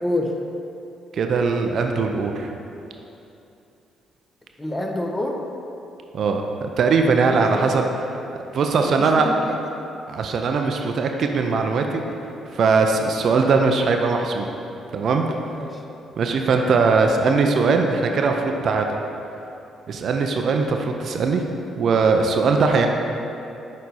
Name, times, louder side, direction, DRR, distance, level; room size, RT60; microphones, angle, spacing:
voice 1, 0.0-0.3 4.6-5.4 7.2-7.7 8.8-9.6 15.5-15.8, left 1 dB, 20° left, 1 dB, 0.9 m, -27 dB
voice 2, 1.1-2.5 6.1-7.8 8.5-9.3 10.1-12.0 12.5-14.5 14.9-15.2 16.2-18.9 19.9-21.4 21.8-22.9, right 4 dB, 60° right, 3 dB, 0.4 m, -20 dB
6.4 x 4.1 x 4.1 m, 2.8 s
hypercardioid pair, 45°, 0 cm